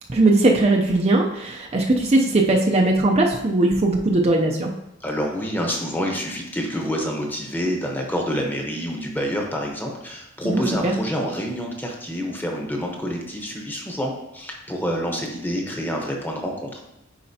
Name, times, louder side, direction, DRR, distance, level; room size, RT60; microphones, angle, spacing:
voice 1, 0.1-4.7 10.4-10.9, right 2 dB, 30° right, 0 dB, 0.6 m, -19 dB
voice 2, 5.0-16.8, equal, 10° left, 1 dB, 1.0 m, -27 dB
9.6 x 4.3 x 2.8 m, 0.91 s
head